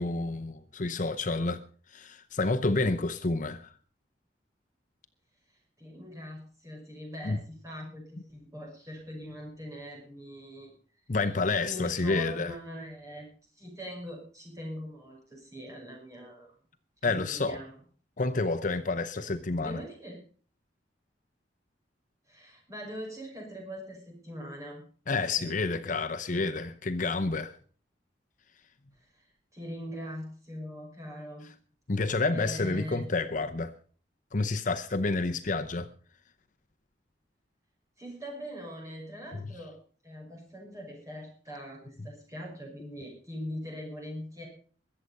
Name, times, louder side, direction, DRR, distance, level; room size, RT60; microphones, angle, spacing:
voice 1, 0.0-1.6 1.9-3.7 7.2-7.4 11.1-12.5 17.0-17.6 18.2-19.8 25.1-27.6 31.9-33.7 34.3-35.9 39.3-39.4 42.0-42.1, left 3 dB, 45° left, 0.8 m, -29 dB
voice 2, 5.8-10.7 11.7-16.5 17.0-17.8 19.6-20.2 22.3-24.8 25.4-25.6 26.3-26.6 29.0-31.5 32.3-33.1 38.0-39.8 40.0-44.5, equal, 20° right, 5.9 m, -42 dB
22.0 x 7.9 x 5.4 m
head